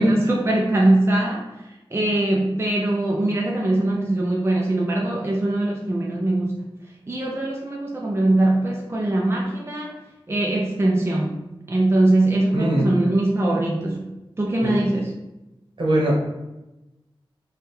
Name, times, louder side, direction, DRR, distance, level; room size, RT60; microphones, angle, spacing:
voice 1, 0.0-6.6 7.1-9.9 10.3-11.4 11.7-14.1 14.4-15.1, right 1 dB, 30° right, -1 dB, 0.5 m, -21 dB
voice 2, 12.5-12.9 14.6-14.8 15.8-16.3, right 1 dB, 65° right, -3 dB, 1.1 m, -21 dB
3.4 x 2.3 x 4.4 m, 0.99 s
wide cardioid pair, 60°, 9 cm